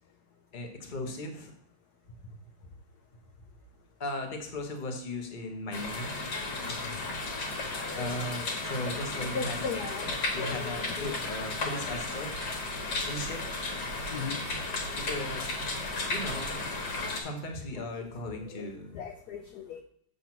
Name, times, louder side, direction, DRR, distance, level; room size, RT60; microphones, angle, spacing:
voice 1, 0.5-1.5 2.2-2.4 4.0-6.2 8.0-9.9 10.3-12.3 13.0-13.4 14.9-15.5 16.1-16.5 17.2-18.9, left 1 dB, 30° left, 3 dB, 1.0 m, -37 dB
sound 1, 5.7-17.2, left 2 dB, 55° left, 1.8 m, -34 dB
voice 2, 7.7-8.1 9.3-10.0 10.4-11.2 11.7-11.8 14.1-14.4 17.7-17.9 18.2-19.8, left 5 dB, 70° left, 5 dB, 0.9 m, -38 dB
7.1 x 4.1 x 5.9 m, 0.66 s
omnidirectional pair, 2.3 m